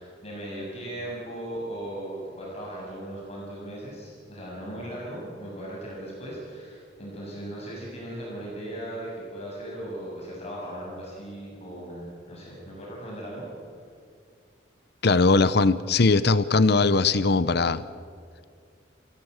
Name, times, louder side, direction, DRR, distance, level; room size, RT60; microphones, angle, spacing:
voice 1, 0.0-13.5, right 1 dB, 35° left, -3 dB, 7.1 m, -37 dB
voice 2, 15.0-17.8, left 3 dB, 60° left, 15 dB, 0.8 m, -20 dB
29.5 x 17.0 x 8.1 m, 2.2 s
head